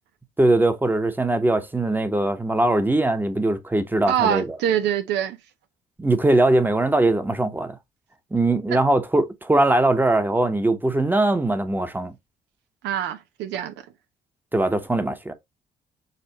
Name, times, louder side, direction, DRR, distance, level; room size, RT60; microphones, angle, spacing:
voice 1, 0.4-4.5 6.0-7.8 8.3-12.1 14.5-15.3, right 2 dB, 10° right, 1.0 m, -21 dB
voice 2, 4.1-5.4 8.7-8.8 12.8-13.7, right 9 dB, 90° right, 0.7 m, -24 dB
6.7 x 2.5 x 2.9 m
cardioid pair, 95°, 18 cm